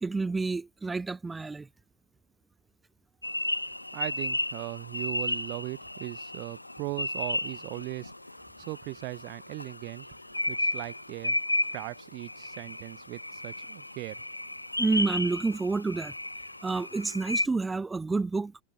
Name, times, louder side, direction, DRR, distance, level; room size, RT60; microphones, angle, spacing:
voice 1, 0.0-1.7 14.8-16.1 16.6-18.5, right 3 dB, 10° right, 0.4 m, -29 dB
sound 1, 3.2-17.5, left 1 dB, 85° left, 0.5 m, -34 dB
voice 2, 3.9-8.1 8.6-10.1 10.5-11.4 11.7-14.2, right 31 dB, 45° right, 0.9 m, -38 dB
figure-of-eight pair, 90°, 0 cm